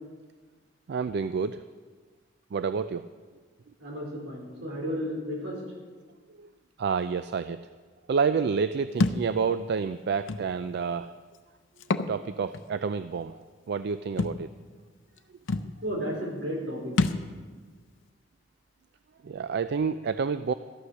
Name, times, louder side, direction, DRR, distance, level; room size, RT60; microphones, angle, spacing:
voice 1, 0.9-1.6 2.5-3.1 6.3-6.5 6.8-7.6 8.1-11.1 12.1-13.4 13.7-14.5 19.2-20.5, right 5 dB, 60° right, 12 dB, 0.4 m, -29 dB
voice 2, 3.8-5.6 15.8-17.0, equal, 80° right, -2 dB, 4.4 m, -33 dB
Thump thud, 9.0-9.3 10.3-10.4 11.8-12.1 12.5-12.6 14.2-14.4 15.2-15.3 15.5-15.7 17.0-17.3, left 3 dB, 90° left, 0.6 m, -26 dB
13.0 x 9.6 x 6.3 m, 1.5 s
head